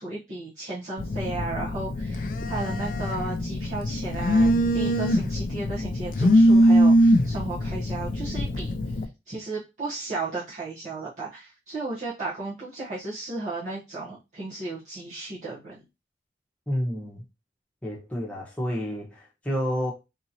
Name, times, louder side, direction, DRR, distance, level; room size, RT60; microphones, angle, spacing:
voice 1, 0.0-9.0 9.3-15.8, right 3 dB, 40° right, 0.9 m, -34 dB
Telephone, 1.0-9.0, equal, 45° left, 0.3 m, -22 dB
voice 2, 16.7-17.2 17.8-19.9, equal, 10° left, 1.0 m, -29 dB
3.7 x 2.9 x 2.8 m
head